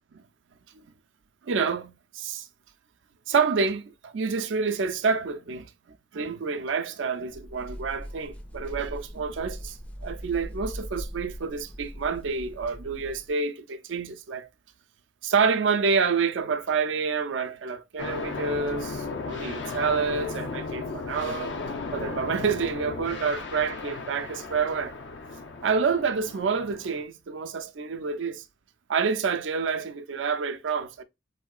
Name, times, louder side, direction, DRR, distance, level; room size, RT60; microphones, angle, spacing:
voice 1, 1.4-2.5 3.3-9.8 10.0-14.5 15.2-21.6 21.9-24.9 25.6-28.4 28.9-31.0, right 5 dB, 90° right, 0.4 m, -28 dB
sound 1, 7.3-13.3, equal, 5° left, 0.3 m, -40 dB
sound 2, 18.0-27.0, left 4 dB, 75° left, 0.6 m, -35 dB
3.5 x 2.7 x 2.3 m
head